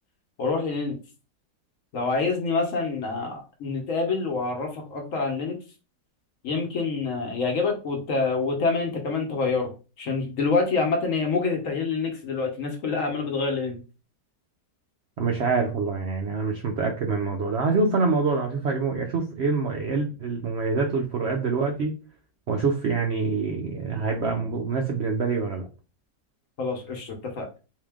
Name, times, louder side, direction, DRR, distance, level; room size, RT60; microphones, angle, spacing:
voice 1, 0.4-1.0 1.9-5.6 6.4-9.7 10.0-13.8 26.6-27.5, left 4 dB, 55° left, 1.0 m, -26 dB
voice 2, 15.2-21.9 22.5-25.7, right 4 dB, 85° right, 0.5 m, -25 dB
3.7 x 2.7 x 3.5 m
omnidirectional pair, 1.9 m